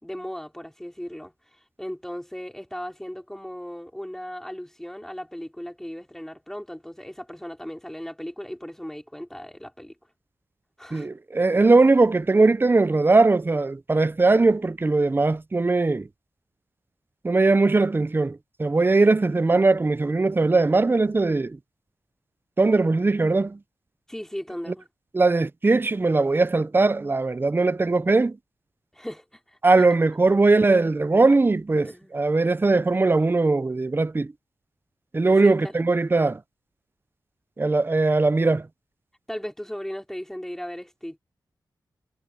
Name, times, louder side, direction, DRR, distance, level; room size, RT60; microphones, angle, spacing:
voice 1, 0.0-9.9 10.8-11.1 24.1-24.9 28.9-29.6 31.8-32.2 35.3-35.7 39.3-41.2, equal, 5° left, 4.4 m, -37 dB
voice 2, 10.9-16.1 17.2-21.6 22.6-23.6 25.1-28.4 29.6-34.3 35.1-36.4 37.6-38.7, right 3 dB, 25° right, 0.6 m, -20 dB
wide cardioid pair, 80°, 8 cm